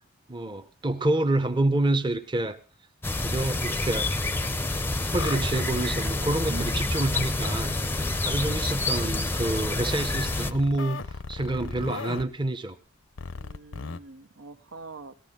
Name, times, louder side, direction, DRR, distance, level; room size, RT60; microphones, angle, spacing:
voice 1, 0.3-2.6 3.2-4.1 5.1-7.7 8.2-12.8, right 2 dB, 25° right, 0.8 m, -27 dB
sound 1, 3.0-10.5, left 2 dB, 10° left, 0.6 m, -28 dB
sound 2, 5.2-6.9 7.4-8.7 9.1-12.2 13.2-14.0, left 4 dB, 70° left, 0.7 m, -38 dB
voice 2, 13.3-15.2, right 3 dB, 75° right, 0.8 m, -43 dB
18.5 x 14.0 x 3.7 m
head